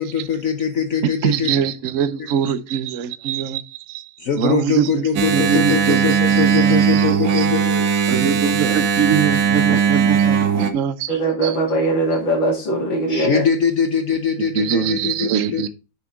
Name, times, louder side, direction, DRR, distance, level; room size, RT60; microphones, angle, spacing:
voice 1, 0.0-1.5 4.2-7.9 13.1-15.7, left 6 dB, 60° left, 1.0 m, -22 dB
voice 2, 1.2-7.5 8.1-11.1 11.4-11.6 14.5-15.7, right 8 dB, 60° right, 0.9 m, -23 dB
Engine, 5.2-10.7, right 7 dB, 90° right, 1.8 m, -18 dB
voice 3, 11.1-13.4, right 2 dB, 75° left, 3.0 m, -20 dB
7.1 x 6.6 x 3.6 m
omnidirectional pair, 2.1 m